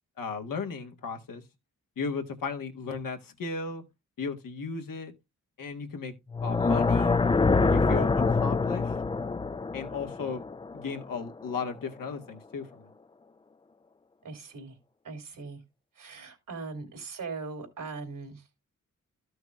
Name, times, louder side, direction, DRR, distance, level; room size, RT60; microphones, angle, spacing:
voice 1, 0.2-1.4 2.0-3.8 4.2-5.1 5.6-6.1 6.4-7.2 7.7-8.9 9.7-10.5 10.7-12.9, left 5 dB, 80° left, 1.5 m, -35 dB
sound 1, 6.3-11.4, left 4 dB, 15° left, 0.4 m, -25 dB
voice 2, 14.2-14.8 15.0-15.6 16.0-18.4, right 4 dB, 80° right, 3.1 m, -40 dB
13.0 x 6.3 x 2.4 m
cardioid pair, 55°, 33 cm